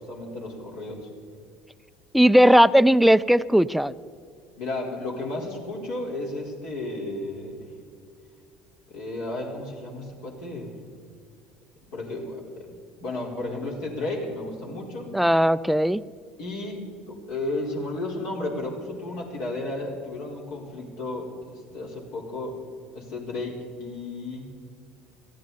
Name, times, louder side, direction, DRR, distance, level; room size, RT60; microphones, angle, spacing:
voice 1, 0.1-1.1 4.6-7.7 8.9-10.7 11.9-15.1 16.4-22.6 22.9-24.5, left 2 dB, 70° left, -2 dB, 4.4 m, -33 dB
voice 2, 2.1-3.9 15.1-16.0, equal, ahead, 15 dB, 0.4 m, -17 dB
23.5 x 14.5 x 4.2 m, 2.2 s
hypercardioid pair, 70°, 4 cm